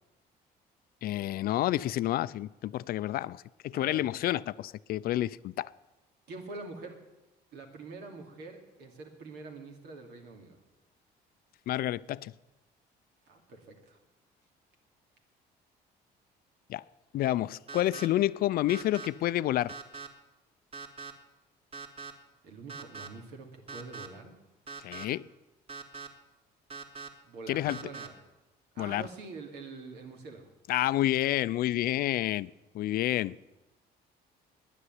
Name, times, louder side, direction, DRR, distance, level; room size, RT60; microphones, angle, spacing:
voice 1, 1.0-5.7 11.7-12.3 16.7-16.8 17.1-19.7 24.8-25.3 27.5-27.8 28.8-29.1 30.7-33.4, left 14 dB, 60° left, 0.4 m, -29 dB
voice 2, 3.7-4.1 6.3-7.0 7.5-10.6 13.3-14.0 22.4-24.3 27.3-28.1 28.7-30.5, right 3 dB, 80° right, 2.6 m, -45 dB
sound 1, 17.7-18.1 18.7-19.1 19.7-20.1 20.7-21.1 21.7-22.1 22.7-23.1 23.7-24.1 24.7-25.0 25.7-26.1 26.7-27.1 27.7-28.1, right 5 dB, 35° right, 2.2 m, -41 dB
10.0 x 9.9 x 9.6 m
cardioid pair, 110°, 17 cm